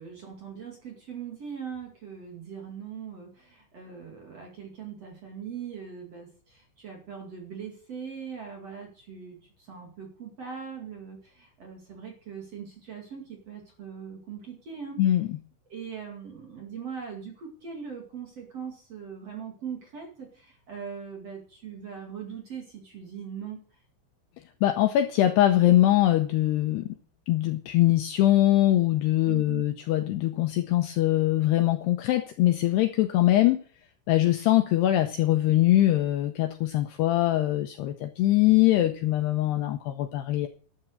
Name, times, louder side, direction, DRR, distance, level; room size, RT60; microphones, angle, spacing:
voice 1, 0.0-15.0 15.7-23.6 29.2-29.7, right 7 dB, 40° right, 1 dB, 2.5 m, -40 dB
voice 2, 15.0-15.4 24.6-26.8 27.3-33.6 34.1-40.5, left 14 dB, 80° left, 7 dB, 2.5 m, -22 dB
12.0 x 9.3 x 6.5 m, 0.42 s
omnidirectional pair, 5.7 m